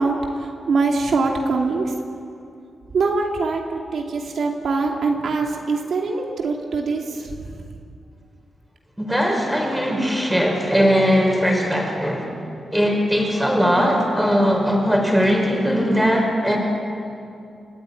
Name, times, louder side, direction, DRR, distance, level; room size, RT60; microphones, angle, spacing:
voice 1, 0.0-1.9 2.9-7.3, right 3 dB, 70° right, 0 dB, 2.6 m, -23 dB
voice 2, 9.0-12.3 12.7-16.6, equal, 5° right, 1 dB, 5.5 m, -19 dB
29.0 x 14.5 x 9.9 m, 2.5 s
wide cardioid pair, 120°, 0 cm